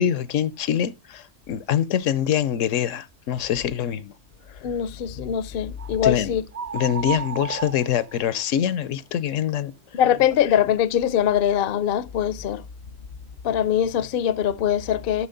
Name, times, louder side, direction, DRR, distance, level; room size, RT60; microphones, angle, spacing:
voice 1, 0.0-4.1 4.5-4.6 6.0-6.3 6.7-9.7, left 10 dB, 75° left, 1.0 m, -24 dB
voice 2, 4.6-6.4 9.9-12.6 13.4-15.3, left 9 dB, 55° left, 0.6 m, -22 dB
sound 1, 5.8-6.1 6.5-8.6, right 6 dB, 75° right, 0.3 m, -33 dB
9.6 x 6.1 x 3.8 m
omnidirectional pair, 1.3 m